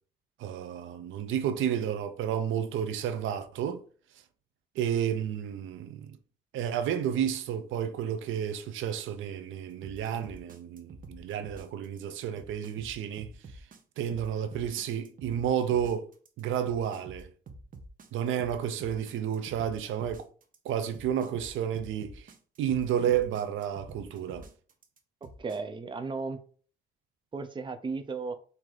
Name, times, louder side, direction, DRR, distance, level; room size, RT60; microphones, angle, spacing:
voice 1, 0.4-3.8 4.8-6.2 6.5-13.3 14.0-16.1 16.4-17.3 18.1-20.3 20.6-22.3 22.6-24.5, right 9 dB, 80° right, 0.6 m, -31 dB
sound 1, 9.8-25.6, right 2 dB, 45° right, 0.9 m, -48 dB
voice 2, 25.4-26.4 27.3-28.4, right 4 dB, 25° right, 0.6 m, -35 dB
4.7 x 2.8 x 3.9 m
cardioid pair, 90°, 20 cm